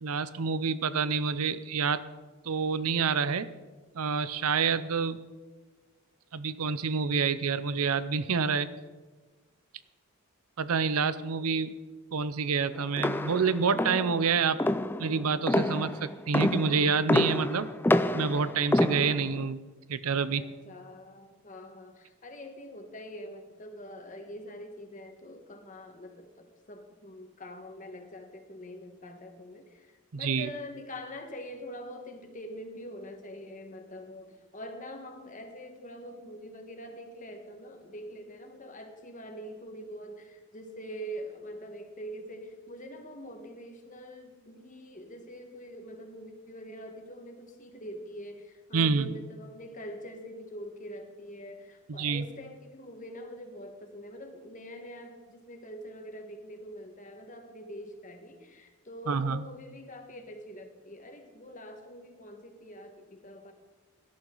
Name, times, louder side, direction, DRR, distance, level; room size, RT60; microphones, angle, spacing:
voice 1, 0.0-2.0 2.4-3.5 3.9-5.2 6.3-8.7 10.6-11.7 12.1-14.6 15.0-17.7 18.1-19.6 19.9-20.4 30.1-30.5 48.7-49.1 51.9-52.2 59.1-59.4, right 5 dB, 80° right, 15 dB, 0.6 m, -28 dB
sound 1, 13.0-19.4, left 1 dB, 10° left, 0.3 m, -28 dB
voice 2, 20.3-63.5, equal, 35° left, 4 dB, 1.6 m, -44 dB
17.5 x 12.0 x 4.0 m, 1.3 s
head